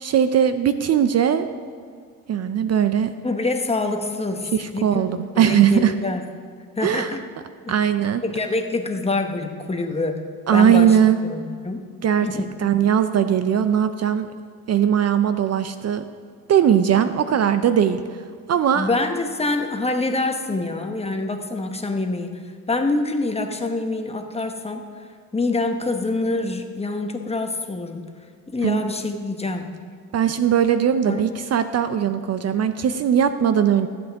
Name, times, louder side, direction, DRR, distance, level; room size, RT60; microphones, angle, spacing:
voice 1, 0.0-1.5 2.3-3.1 4.5-5.9 6.8-7.1 7.7-8.2 10.5-11.2 12.0-14.3 14.7-16.0 16.5-18.0 18.5-18.9 28.6-28.8 30.1-33.9, right 9 dB, 45° right, 10 dB, 0.5 m, -19 dB
voice 2, 3.2-5.0 5.3-6.2 6.8-7.2 7.7-7.8 8.2-10.2 10.5-11.0 11.3-11.8 12.2-12.5 18.7-25.0 25.3-28.1 28.5-29.7 31.0-31.2, left 2 dB, 15° left, 5 dB, 0.9 m, -26 dB
14.5 x 7.9 x 3.5 m, 2.1 s
cardioid pair, 100°, 35 cm